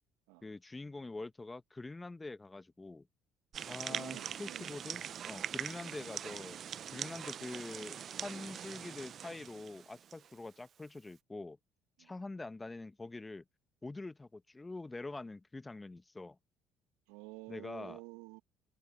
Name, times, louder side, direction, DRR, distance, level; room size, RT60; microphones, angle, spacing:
voice 1, 0.4-3.1 3.7-6.6 6.9-11.6 12.0-13.4 13.8-16.4 17.5-18.0, left 2 dB, 20° left, 1.4 m, -45 dB
sound 1, 3.5-10.3, right 8 dB, 50° right, 0.5 m, -43 dB
voice 2, 3.8-5.0 12.0-12.1 17.1-18.4, right 24 dB, 75° right, 1.4 m, -51 dB
hypercardioid pair, 60°, 0 cm